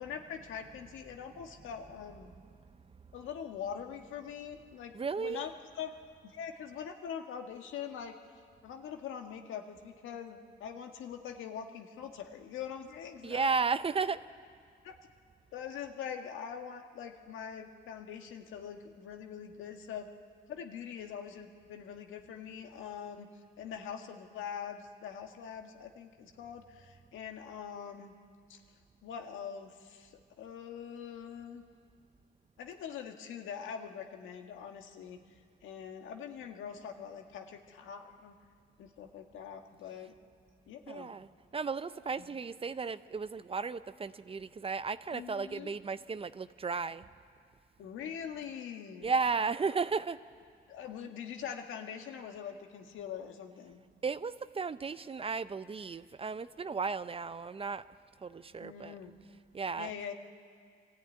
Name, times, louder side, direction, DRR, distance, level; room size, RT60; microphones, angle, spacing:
voice 1, 0.0-2.3 3.1-6.0 6.2-8.2 8.6-13.5 14.8-14.9 15.5-20.1 20.5-23.3 23.6-28.1 28.5-28.6 29.0-31.6 32.6-35.2 35.6-38.4 38.8-40.1 40.7-41.1 42.3-42.4 45.1-45.7 47.8-49.1 50.7-53.8 58.6-59.1 59.8-60.1, left 8 dB, 85° left, 4 dB, 1.7 m, -43 dB
voice 2, 4.9-5.5 13.2-14.2 40.9-41.3 41.5-47.0 49.0-50.2 54.0-57.8 58.2-59.0 59.5-59.9, right 5 dB, 30° right, 14 dB, 0.6 m, -34 dB
23.5 x 14.0 x 9.3 m, 2.1 s
cardioid pair, 90°, 20 cm